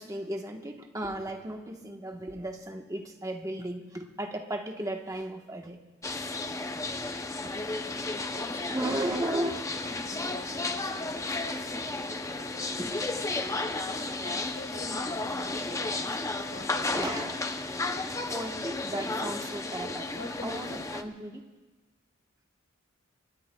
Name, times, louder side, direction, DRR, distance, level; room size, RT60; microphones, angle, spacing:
voice 1, 0.0-5.8 6.3-6.5 7.4-8.0 8.7-9.6 12.8-12.9 16.9-17.4 18.3-20.1 20.4-21.4, right 1 dB, 15° right, 3 dB, 1.2 m, -35 dB
sound 1, 6.0-21.0, left 2 dB, 15° left, 0.6 m, -33 dB
voice 2, 8.0-9.0 9.3-12.8 13.3-16.9 20.1-20.6, left 2 dB, 60° left, 5 dB, 1.4 m, -48 dB
23.5 x 22.0 x 2.3 m, 1.1 s
head